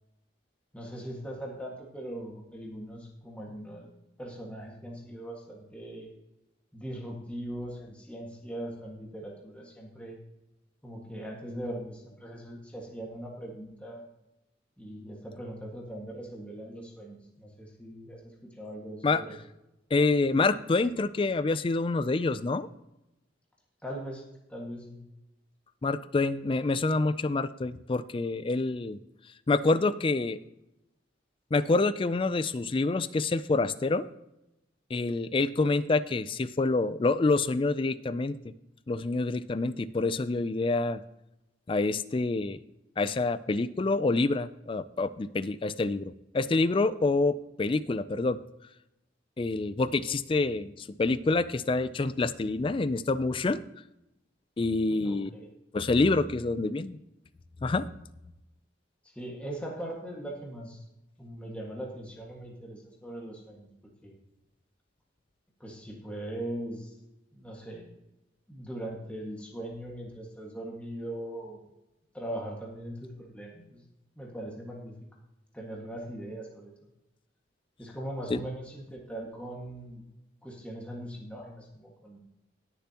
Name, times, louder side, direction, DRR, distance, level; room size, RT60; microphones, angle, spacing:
voice 1, 0.7-6.1 6.7-10.1 10.8-14.0 14.8-19.4 23.8-25.0 54.9-55.5 59.2-60.8 61.2-63.7 64.0-64.1 65.6-66.9 67.3-68.0 68.5-71.6 72.1-73.8 74.2-74.9 75.5-76.7 77.8-80.0 80.4-82.2, right 1 dB, 5° left, -2 dB, 1.7 m, -40 dB
voice 2, 19.9-22.7 25.8-29.0 29.5-30.4 31.5-34.1 34.9-38.4 38.9-41.0 41.7-42.6 43.0-48.4 49.4-53.6 54.6-55.3 55.7-57.0 57.6-57.9 78.3-78.4, left 3 dB, 30° left, 15 dB, 0.4 m, -27 dB
19.5 x 6.9 x 2.9 m, 0.91 s
head